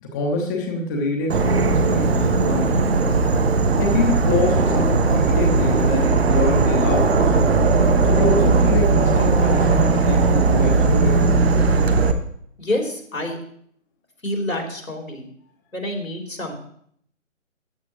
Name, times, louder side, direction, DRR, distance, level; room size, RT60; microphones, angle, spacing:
voice 1, 0.0-3.0 3.8-7.4 8.0-11.4, left 2 dB, 15° left, 1 dB, 0.9 m, -25 dB
Insect / Frog, 1.3-12.1, right 3 dB, 50° right, 1.2 m, -18 dB
voice 2, 12.6-13.4 14.2-15.3 15.7-16.5, left 1 dB, 90° left, 2 dB, 3.3 m, -27 dB
14.0 x 9.0 x 3.0 m, 0.64 s
figure-of-eight pair, 140°, 39 cm